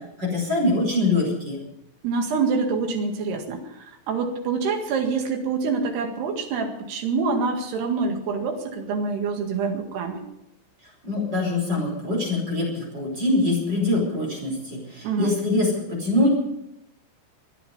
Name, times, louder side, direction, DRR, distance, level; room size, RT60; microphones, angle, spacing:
voice 1, 0.2-1.6 11.0-16.3, left 2 dB, 25° right, -1 dB, 5.4 m, -24 dB
voice 2, 2.0-10.3 15.0-15.3, right 4 dB, 75° right, 4 dB, 3.9 m, -26 dB
25.5 x 10.0 x 5.4 m, 0.83 s
omnidirectional pair, 4.8 m